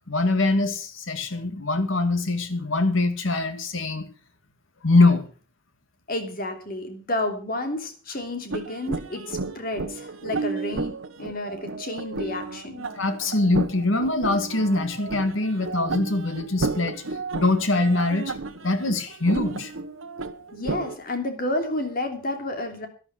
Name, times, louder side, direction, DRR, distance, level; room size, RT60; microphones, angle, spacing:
voice 1, 0.1-4.1 4.8-5.3 13.0-17.0 17.3-18.3 18.6-19.7, left 2 dB, 75° left, 9 dB, 2.1 m, -23 dB
voice 2, 6.1-12.9 20.5-22.9, left 1 dB, 45° left, 5 dB, 2.9 m, -31 dB
sound 1, 8.5-21.0, right 3 dB, 85° right, 1.1 m, -33 dB
12.0 x 11.5 x 6.1 m, 0.38 s
head